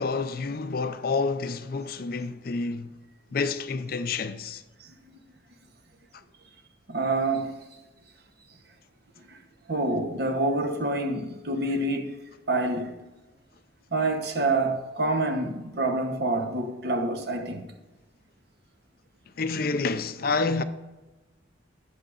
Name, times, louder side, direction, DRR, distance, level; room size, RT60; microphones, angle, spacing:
voice 1, 0.0-2.9 3.3-4.6 19.4-20.6, left 4 dB, 50° left, 0.5 m, -28 dB
voice 2, 6.9-7.5 9.3-9.4 9.7-12.2 12.5-12.9 13.9-17.6, right 2 dB, 55° right, 1.0 m, -27 dB
18.5 x 6.4 x 2.5 m
head